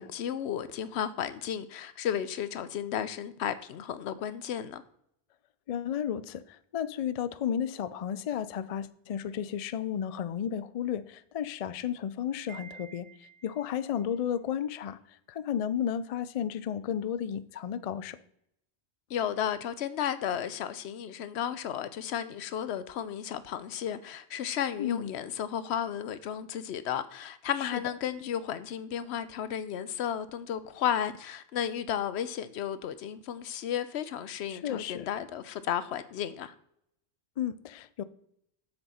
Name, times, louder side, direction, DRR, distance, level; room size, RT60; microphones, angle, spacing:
voice 1, 0.0-4.8 19.1-36.5, left 9 dB, 80° left, 0.9 m, -33 dB
voice 2, 5.7-13.1 13.4-15.0 15.3-18.2 24.8-25.1 27.7-27.8 34.5-35.1 37.4-38.0, left 9 dB, 55° left, 0.4 m, -33 dB
Wind chime, 12.5-13.9, right 6 dB, 40° right, 0.8 m, -50 dB
7.6 x 6.8 x 4.2 m
omnidirectional pair, 1.1 m